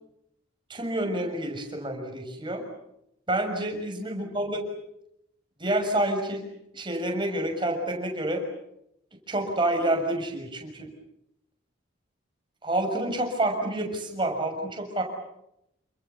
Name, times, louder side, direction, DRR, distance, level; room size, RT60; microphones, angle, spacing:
voice 1, 0.7-2.6 3.3-4.6 5.6-6.4 6.7-8.4 9.3-10.9 12.6-15.0, right 1 dB, 25° right, 3 dB, 6.5 m, -28 dB
29.5 x 27.0 x 7.1 m, 0.82 s
head